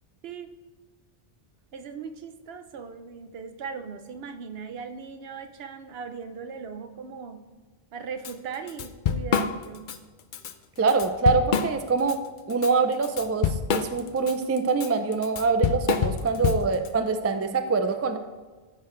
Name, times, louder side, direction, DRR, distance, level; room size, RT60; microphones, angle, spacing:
voice 1, 1.7-7.4 7.9-9.9 16.4-17.2, right 5 dB, 70° right, 8 dB, 0.9 m, -39 dB
Drum kit / Drum, 8.2-8.3 8.7-10.0 10.3-10.5 10.9-12.1 12.5-16.9, left 7 dB, 60° left, 0.6 m, -27 dB
voice 2, 10.8-12.2 12.5-18.2, right 4 dB, 25° right, 8 dB, 0.3 m, -24 dB
13.5 x 5.6 x 3.2 m, 1.4 s
omnidirectional pair, 1.1 m